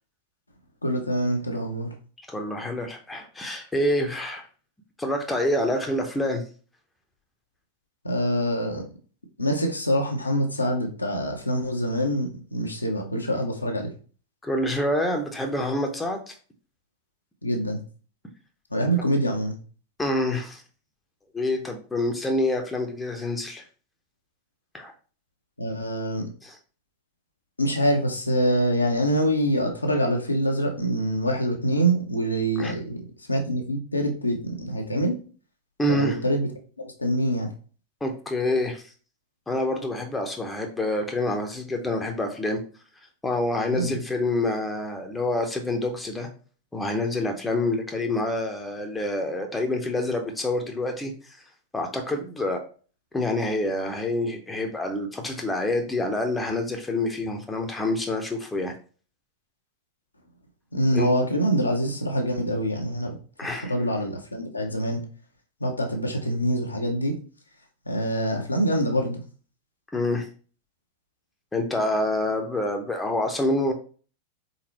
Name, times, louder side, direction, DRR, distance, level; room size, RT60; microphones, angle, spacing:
voice 1, 0.8-1.9 8.0-8.8 9.4-13.9 17.4-17.8 18.7-19.5 25.6-26.3 27.6-35.2 35.9-36.5 36.8-37.5 43.7-44.0 60.7-63.2 63.7-65.0 65.6-67.2 67.9-69.2, equal, 80° left, 2 dB, 0.8 m, -25 dB
voice 2, 2.3-4.4 5.0-6.4 14.4-16.3 20.0-20.6 21.3-23.6 24.7-24.9 26.4-26.6 32.6-32.7 35.8-36.2 38.0-38.8 39.5-42.6 43.2-46.3 46.7-51.1 51.7-52.6 53.1-58.7 60.9-61.1 63.4-63.7 69.9-70.3 71.5-73.7, left 1 dB, 10° left, 4 dB, 0.8 m, -27 dB
4.1 x 3.9 x 3.0 m, 0.39 s
figure-of-eight pair, 90°, 0 cm